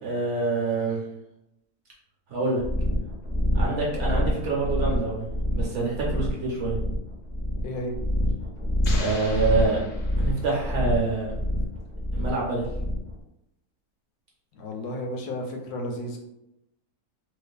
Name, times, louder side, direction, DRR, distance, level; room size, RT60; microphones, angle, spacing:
voice 1, 0.0-1.0 2.3-2.6 3.5-6.8 9.0-9.8 10.2-11.3 12.1-12.7, right 3 dB, 60° right, -4 dB, 0.9 m, -26 dB
sound 1, 2.6-13.1, left 1 dB, 25° left, 0.6 m, -27 dB
voice 2, 7.6-8.0 14.5-16.2, left 1 dB, 90° left, 2 dB, 1.1 m, -32 dB
sound 2, 8.8-10.7, left 3 dB, 65° left, 0.9 m, -39 dB
2.5 x 2.4 x 2.2 m, 0.85 s
omnidirectional pair, 1.6 m